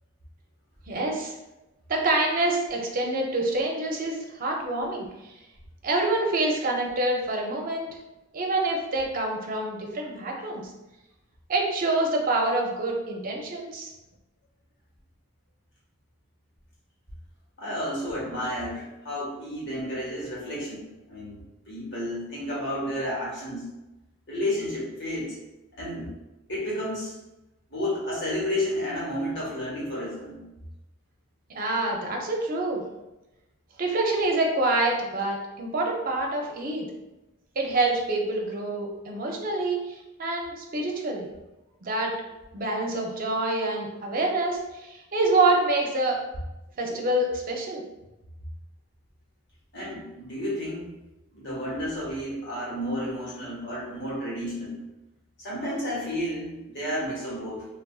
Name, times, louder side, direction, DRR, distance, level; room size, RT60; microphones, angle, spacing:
voice 1, 0.9-1.3 1.9-5.1 5.8-7.9 8.3-10.6 11.5-13.9 31.5-32.8 33.8-36.9 37.6-41.3 41.8-42.1 42.5-46.2 46.8-47.8, right 2 dB, 40° right, 1 dB, 0.5 m, -26 dB
voice 2, 17.6-21.4 21.7-23.7 24.3-25.4 25.8-26.1 26.5-27.1 27.7-30.4 49.7-50.9 51.3-54.7 55.4-57.6, left 1 dB, 55° left, -6 dB, 1.2 m, -31 dB
3.3 x 2.4 x 2.3 m, 0.99 s
head